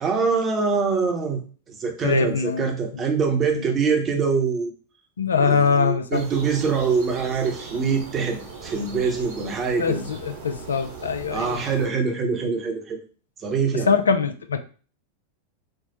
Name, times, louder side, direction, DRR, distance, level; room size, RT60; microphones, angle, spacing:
voice 1, 0.0-1.4 1.7-4.7 5.4-10.0 11.3-13.0 13.4-13.9, right 5 dB, 25° right, 3 dB, 0.8 m, -24 dB
voice 2, 2.0-2.7 3.5-3.6 5.2-6.2 9.8-11.6 13.9-14.6, left 5 dB, 70° left, 9 dB, 0.3 m, -22 dB
sound 1, 6.1-11.9, right 4 dB, 55° right, 1.0 m, -39 dB
4.3 x 2.0 x 3.0 m, 0.39 s
figure-of-eight pair, 90°, 0 cm